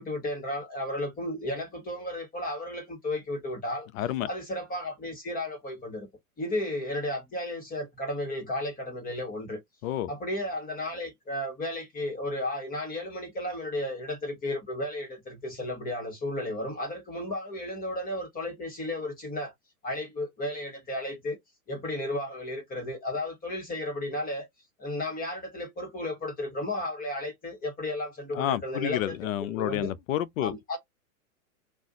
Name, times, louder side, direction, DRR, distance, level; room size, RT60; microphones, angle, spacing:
voice 1, 0.0-3.9 4.3-6.1 6.4-9.6 10.1-19.5 19.8-21.4 21.7-24.5 24.8-29.9 30.4-30.8, left 1 dB, 20° left, 1.2 m, -33 dB
voice 2, 4.0-4.3 9.8-10.1 28.3-30.8, left 12 dB, 60° left, 0.6 m, -30 dB
2.5 x 2.3 x 3.7 m
hypercardioid pair, 120°, 45 cm